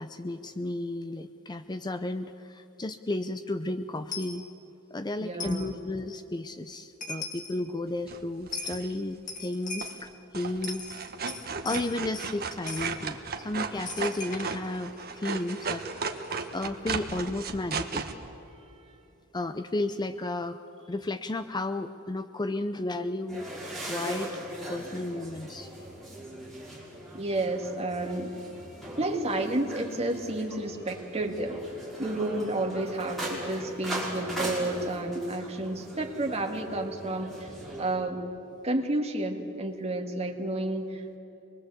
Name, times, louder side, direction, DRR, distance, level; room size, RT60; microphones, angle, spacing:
voice 1, 0.0-4.4 4.9-10.8 11.6-15.8 16.5-18.1 19.3-20.6 20.9-23.5 23.8-24.3 24.7-25.7, left 2 dB, 20° left, 10 dB, 0.5 m, -33 dB
Coin (dropping), 4.1-4.4 5.4-5.7 6.7-6.8 7.0-7.5 8.5-8.8 9.3-10.0 10.5-12.3 12.7-12.9 13.9-16.5, left 4 dB, 35° left, 2.2 m, -39 dB
voice 2, 5.2-5.8 27.1-28.3 29.0-31.6 32.0-37.5 37.8-38.2 38.6-41.2, right 2 dB, 30° right, 3 dB, 2.1 m, -31 dB
sound 1, 8.1-8.9 9.8-10.1 10.3-18.1, right 5 dB, 45° right, 1.5 m, -35 dB
sound 2, 23.3-37.9, right 1 dB, ahead, 5.5 m, -39 dB
26.0 x 21.5 x 8.3 m, 2.9 s
head